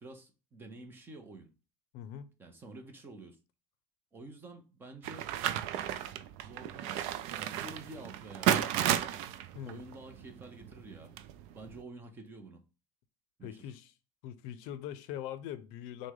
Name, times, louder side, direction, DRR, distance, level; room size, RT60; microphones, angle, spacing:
voice 1, 0.0-1.5 2.4-3.4 4.1-5.3 6.4-7.0 7.3-8.9 9.7-11.1 11.5-12.6 13.4-13.7, right 2 dB, 20° right, 0.7 m, -49 dB
voice 2, 1.9-2.3 9.5-9.8 13.4-13.9 14.2-16.1, left 10 dB, 75° left, 0.5 m, -42 dB
sound 1, 5.0-11.8, right 10 dB, 70° right, 0.4 m, -34 dB
6.0 x 2.2 x 3.7 m
cardioid pair, 165°, 11 cm